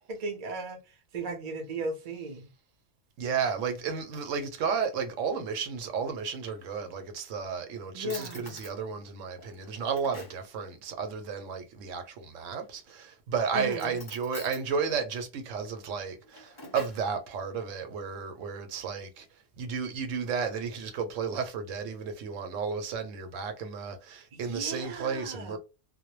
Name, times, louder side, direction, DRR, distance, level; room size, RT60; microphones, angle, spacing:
voice 1, 0.1-2.5 7.9-8.5 13.5-14.0 24.3-25.6, right 2 dB, 45° right, 0.6 m, -36 dB
voice 2, 3.2-19.3 19.6-25.6, right 6 dB, 75° right, 0.9 m, -33 dB
Drawer open or close, 6.2-7.1 7.7-7.8 8.1-8.8 9.4-10.5 12.3-12.9 13.6-14.7 16.0-17.1, left 2 dB, 30° left, 0.4 m, -47 dB
2.2 x 2.1 x 2.9 m
omnidirectional pair, 1.3 m